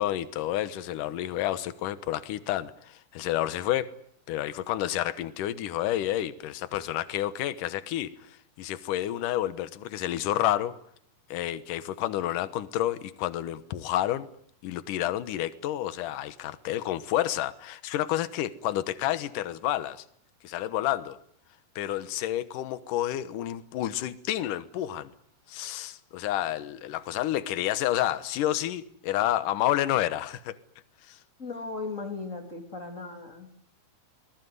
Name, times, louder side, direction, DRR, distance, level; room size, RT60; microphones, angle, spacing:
voice 1, 0.0-3.9 4.3-10.7 11.3-14.3 14.6-20.0 20.4-21.2 21.8-25.1 25.5-30.6 31.0-31.2, left 13 dB, 65° left, 14 dB, 2.5 m, -30 dB
voice 2, 31.4-33.5, left 3 dB, 20° left, 5 dB, 3.0 m, -37 dB
24.0 x 20.0 x 9.6 m, 0.67 s
omnidirectional pair, 4.6 m